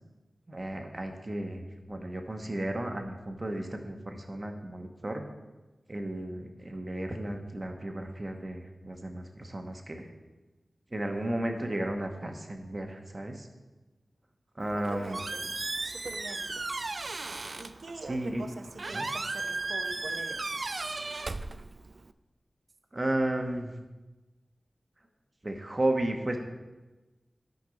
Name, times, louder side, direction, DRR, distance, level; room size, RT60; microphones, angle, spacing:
voice 1, 0.5-5.2 5.9-10.1 10.9-13.5 14.6-15.2 18.1-18.4 18.9-19.0 22.9-23.7 25.4-26.4, right 1 dB, 30° right, 4 dB, 1.2 m, -33 dB
Squeak, 14.6-22.1, right 3 dB, 45° right, 0.4 m, -36 dB
voice 2, 14.7-15.4 15.8-16.4 17.6-20.4, right 3 dB, 75° right, 6 dB, 0.8 m, -43 dB
12.5 x 5.3 x 5.2 m, 1.1 s
wide cardioid pair, 95°, 0 cm